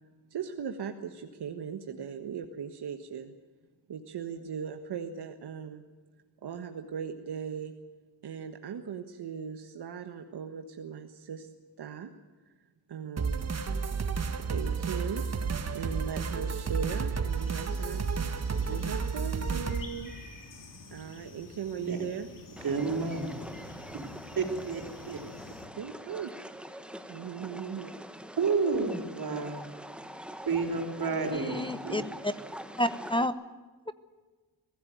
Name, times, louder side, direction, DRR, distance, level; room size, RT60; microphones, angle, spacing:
voice 1, 0.3-3.3 3.9-5.8 6.4-7.7 8.2-11.5 11.8-12.1 12.9-13.5 14.5-15.2 15.7-18.0 18.6-20.1 20.9-22.3 25.7-26.3 26.9-27.9, right 7 dB, 75° right, 6 dB, 1.5 m, -38 dB
sound 1, 13.2-19.8, right 5 dB, 40° right, 1.6 m, -31 dB
sound 2, 17.3-25.7, left 3 dB, 55° left, 3.8 m, -49 dB
sound 3, 22.6-33.3, equal, 5° right, 1.4 m, -44 dB
voice 2, 22.6-23.4 24.4-25.2 28.4-29.7 30.5-32.1, right 4 dB, 60° right, 5 dB, 4.4 m, -30 dB
voice 3, 31.3-32.3 32.8-33.3, left 1 dB, 15° left, 13 dB, 0.8 m, -30 dB
23.5 x 15.5 x 9.3 m, 1.3 s
wide cardioid pair, 115°, 39 cm